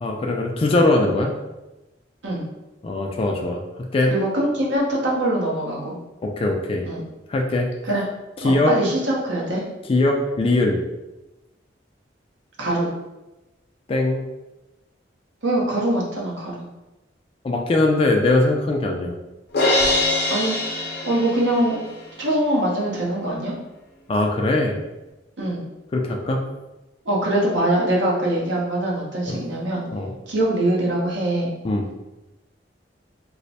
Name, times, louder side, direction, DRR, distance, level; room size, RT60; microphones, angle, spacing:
voice 1, 0.0-1.3 2.8-3.6 3.9-4.1 6.2-6.8 7.3-7.7 8.4-8.7 9.9-10.8 13.9-14.2 17.4-19.1 24.1-24.8 25.9-26.4 29.3-29.4 29.9-30.1 31.6-31.8, left 2 dB, 30° left, 1 dB, 0.4 m, -21 dB
voice 2, 4.1-6.0 6.8-7.0 7.8-8.0 8.4-9.6 12.6-12.9 15.4-16.6 20.3-20.6 21.0-23.5 25.4-25.6 27.0-29.8 30.3-31.5, right 1 dB, 80° right, -4 dB, 1.0 m, -23 dB
Crash cymbal, 19.5-21.8, left 2 dB, 60° left, 0.7 m, -22 dB
3.1 x 2.0 x 4.1 m, 1.0 s
head